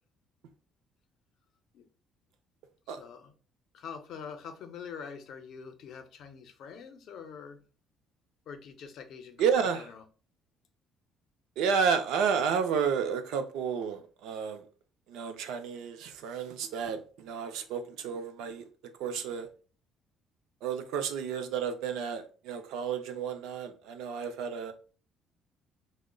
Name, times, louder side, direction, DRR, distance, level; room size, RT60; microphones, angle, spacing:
voice 1, 3.0-3.3 3.7-7.6 8.5-10.0, left 6 dB, 60° left, 0.5 m, -45 dB
voice 2, 9.4-9.9 11.6-14.6 15.1-18.7 19.0-19.5 20.6-24.7, right 6 dB, 85° right, 0.5 m, -31 dB
4.8 x 2.0 x 2.2 m
cardioid pair, 145°, 0 cm